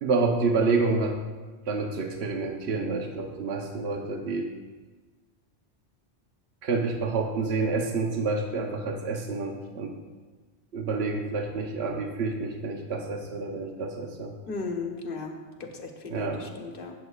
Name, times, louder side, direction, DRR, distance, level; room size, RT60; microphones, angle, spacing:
voice 1, 0.0-1.2 1.7-4.5 6.6-9.9 10.7-14.3 16.1-16.4, right 3 dB, 65° right, 3 dB, 1.1 m, -28 dB
voice 2, 14.5-15.3 15.6-16.9, left 4 dB, 50° left, 2 dB, 1.2 m, -35 dB
17.5 x 7.2 x 2.4 m, 1.3 s
omnidirectional pair, 1.2 m